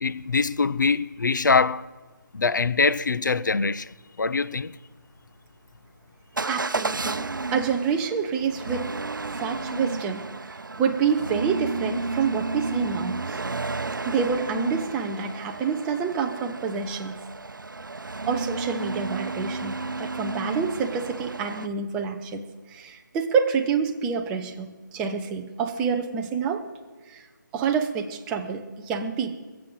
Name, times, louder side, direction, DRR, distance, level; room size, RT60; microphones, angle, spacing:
voice 1, 0.0-1.8 2.3-3.9 4.2-4.7, left 4 dB, 70° left, 0.6 m, -23 dB
Motor vehicle (road) / Engine starting / Accelerating revving vroom, 6.4-21.7, right 3 dB, 85° right, 0.7 m, -32 dB
voice 2, 6.5-7.3 7.5-8.9 9.3-10.2 10.8-13.4 14.0-17.3 18.3-26.6 27.1-27.2 27.5-29.4, right 6 dB, 5° right, 0.5 m, -27 dB
21.5 x 7.7 x 7.6 m
figure-of-eight pair, 160°, 11 cm